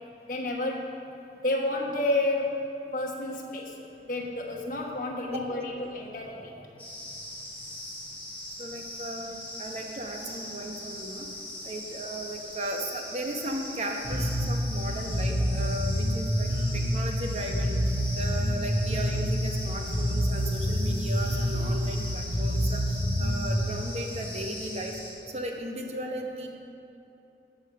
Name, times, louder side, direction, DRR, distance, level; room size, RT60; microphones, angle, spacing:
voice 1, 0.3-0.9 1.4-2.6 2.9-6.6, left 2 dB, 45° left, -1 dB, 1.3 m, -30 dB
sound 1, 6.8-25.1, left 1 dB, 10° left, 2.1 m, -41 dB
voice 2, 8.6-11.3 11.6-17.8 18.2-25.0 25.3-26.5, right 1 dB, 35° right, 2 dB, 0.9 m, -36 dB
Bass guitar, 14.0-23.5, equal, 90° right, 2.8 m, -28 dB
14.0 x 4.8 x 6.5 m, 2.9 s
head